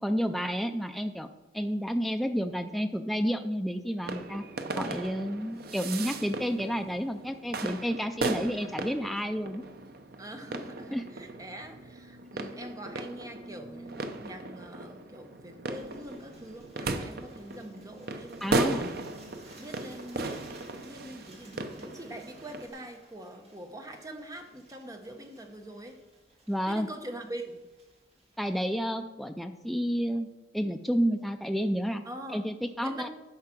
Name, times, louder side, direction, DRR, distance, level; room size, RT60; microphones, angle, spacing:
voice 1, 0.0-1.3 1.5-4.4 4.8-9.6 10.9-11.0 18.4-18.9 26.5-26.9 28.4-30.3 30.5-32.0 32.3-33.1, equal, ahead, 7 dB, 0.3 m, -30 dB
sound 1, 4.0-22.7, right 2 dB, 55° right, 0.7 m, -37 dB
voice 2, 10.2-13.9 14.2-19.0 19.6-20.4 20.8-25.9 26.7-27.6 32.0-32.4 32.8-33.1, right 1 dB, 20° right, 5 dB, 0.9 m, -43 dB
sound 2, 15.7-28.9, right 2 dB, 35° right, 1.9 m, -58 dB
9.6 x 5.6 x 5.9 m, 1.1 s
head